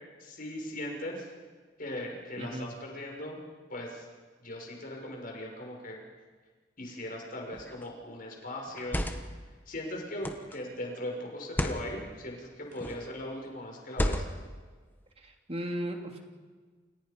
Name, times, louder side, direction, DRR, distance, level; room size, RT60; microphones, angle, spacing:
voice 1, 0.2-1.3 1.8-3.4 3.7-4.1 4.4-6.0 6.8-9.0 9.7-14.3, left 1 dB, 50° left, 0 dB, 6.4 m, -39 dB
sound 1, 7.5-7.8 8.7-9.4 10.2-10.6 11.4-11.8 12.7-13.1 13.9-14.5, left 1 dB, 10° left, 1.4 m, -32 dB
voice 2, 15.2-16.2, equal, 35° right, 2 dB, 3.0 m, -36 dB
29.5 x 28.0 x 5.4 m, 1.5 s
head